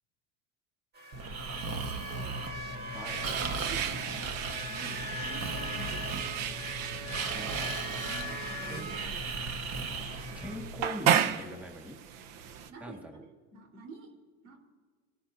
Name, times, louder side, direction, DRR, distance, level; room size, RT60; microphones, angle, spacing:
sound 1, 0.9-10.6, left 1 dB, 25° right, 1.8 m, -42 dB
Breathing, 1.1-10.8, right 3 dB, 45° right, 1.4 m, -37 dB
voice 1, 1.7-2.8 3.4-4.4 4.7-6.4 8.0-9.6 12.7-14.1 14.4-14.6, right 2 dB, 90° right, 1 dB, 4.3 m, -49 dB
voice 2, 2.9-3.2 7.3-7.8 8.6-8.9 10.4-12.0 12.8-13.1, equal, 5° right, 1 dB, 2.1 m, -42 dB
sound 2, 3.0-12.7, right 8 dB, 65° right, 1.2 m, -34 dB
26.0 x 13.5 x 2.8 m, 1.5 s
supercardioid pair, 125°, 36 cm